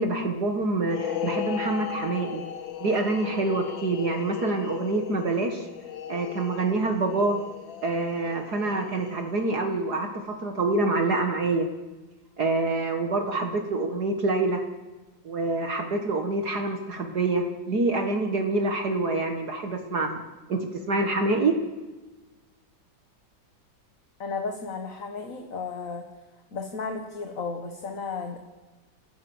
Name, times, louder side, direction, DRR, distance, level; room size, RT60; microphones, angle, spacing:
voice 1, 0.0-2.4 2.8-5.7 6.1-7.4 7.8-11.7 12.4-14.6 15.2-20.2 20.5-21.5, right 3 dB, 55° right, 4 dB, 2.1 m, -26 dB
sound 1, 0.8-9.4, left 9 dB, 85° left, 2.0 m, -37 dB
voice 2, 24.2-26.1 26.5-28.4, left 4 dB, 45° left, 5 dB, 1.9 m, -34 dB
29.5 x 15.0 x 7.2 m, 1.2 s
omnidirectional pair, 2.1 m